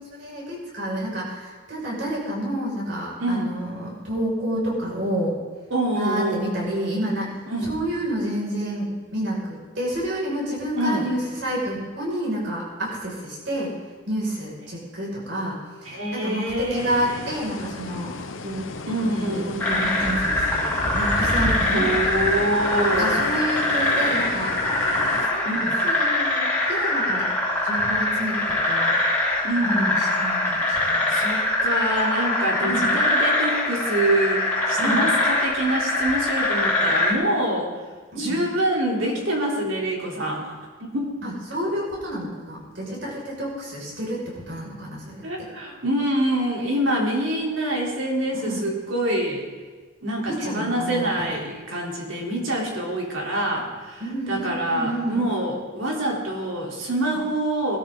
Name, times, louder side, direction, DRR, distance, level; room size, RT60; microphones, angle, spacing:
voice 1, 0.0-5.4 5.9-13.8 14.1-18.1 18.4-18.7 19.0-21.9 22.4-22.5 23.0-24.5 25.1-27.3 27.6-28.9 29.6-31.2 32.6-32.9 34.8-35.0 38.1-38.4 41.2-45.5 48.3-48.7 50.3-51.4 54.0-55.2, right 1 dB, 65° right, -4 dB, 5.8 m, -29 dB
voice 2, 3.2-3.5 5.7-6.4 7.5-7.7 10.8-11.0 15.9-17.2 18.9-19.6 21.7-23.2 25.4-25.8 29.4-30.0 30.7-37.7 38.1-41.1 45.2-49.5 50.0-54.0 54.3-57.8, right 1 dB, 80° right, -2 dB, 3.5 m, -26 dB
sound 1, 16.7-25.3, left 3 dB, 85° left, 0.9 m, -35 dB
sound 2, 19.6-37.1, left 1 dB, 10° left, 2.7 m, -23 dB
20.5 x 13.0 x 3.9 m, 1.4 s
head